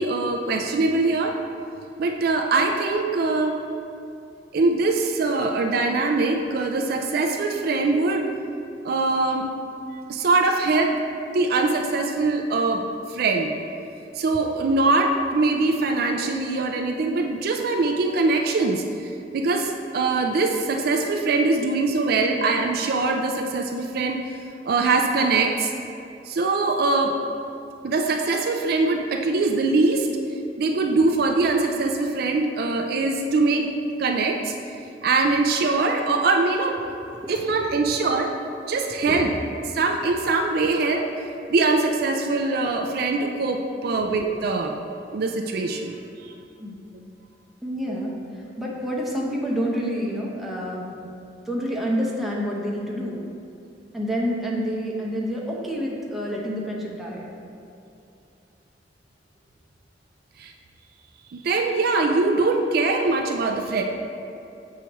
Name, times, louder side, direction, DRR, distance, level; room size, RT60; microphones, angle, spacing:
voice 1, 0.0-1.4 2.0-3.6 4.5-8.3 8.8-9.5 10.1-11.0 11.3-12.8 13.1-13.5 14.2-18.8 19.3-24.2 24.7-25.7 26.3-27.1 27.8-30.1 30.6-33.7 34.0-34.5 35.0-37.0 37.3-38.3 38.7-39.3 39.7-41.1 41.5-44.8 45.1-46.0 46.2-46.3 47.9-48.0 60.4-60.5 61.3-63.8, right 3 dB, 60° right, 4 dB, 0.4 m, -22 dB
voice 2, 47.6-48.2 48.6-50.8 51.5-53.2 53.9-57.3, equal, ahead, -4 dB, 0.8 m, -28 dB
6.9 x 4.7 x 3.0 m, 2.6 s
head